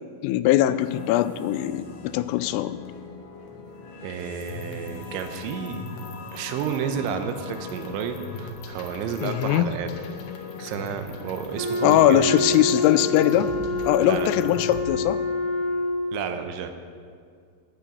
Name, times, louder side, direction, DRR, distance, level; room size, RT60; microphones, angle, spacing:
voice 1, 0.2-2.8 9.2-9.7 11.8-13.5 13.8-15.2, left 13 dB, 85° left, 14 dB, 3.2 m, -21 dB
sound 1, 0.8-14.8, left 4 dB, 65° left, 3.0 m, -39 dB
voice 2, 4.0-5.8 6.3-9.9 10.6-12.4 14.0-14.3 16.1-16.7, right 7 dB, 80° right, 7 dB, 3.0 m, -31 dB
Wind instrument woodwind instrument, 11.5-16.2, left 2 dB, 45° right, 2.9 m, -27 dB
19.5 x 9.5 x 5.3 m, 2.1 s
omnidirectional pair, 5.7 m